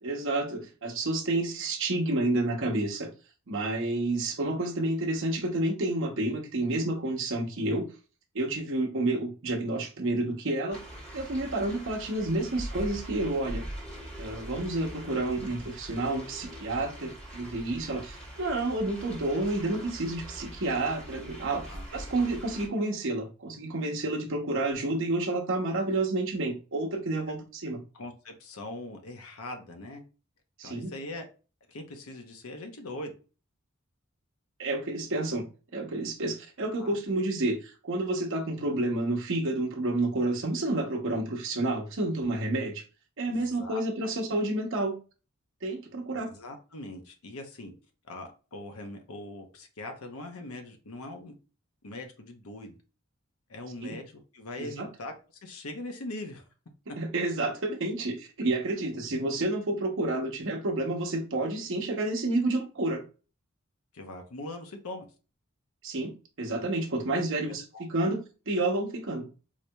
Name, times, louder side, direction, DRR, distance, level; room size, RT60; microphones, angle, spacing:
voice 1, 0.0-3.1 3.5-7.9 8.3-10.8 11.1-13.7 14.2-21.7 21.9-27.8 30.6-30.9 34.6-35.5 35.7-42.8 43.2-44.9 45.6-46.3 53.8-54.0 54.6-54.9 57.0-63.0 65.8-69.3, right 2 dB, 65° right, 0.9 m, -30 dB
sound 1, 10.7-22.7, right 1 dB, 5° left, 1.5 m, -42 dB
voice 2, 21.5-21.8 27.9-30.0 30.6-31.3 31.7-33.1 36.8-36.9 43.3-44.1 46.3-47.7 48.0-51.3 51.8-52.7 53.5-55.1 55.4-56.4 63.9-65.1 67.4-68.1, left 2 dB, 85° left, 0.8 m, -41 dB
4.7 x 2.8 x 2.3 m
head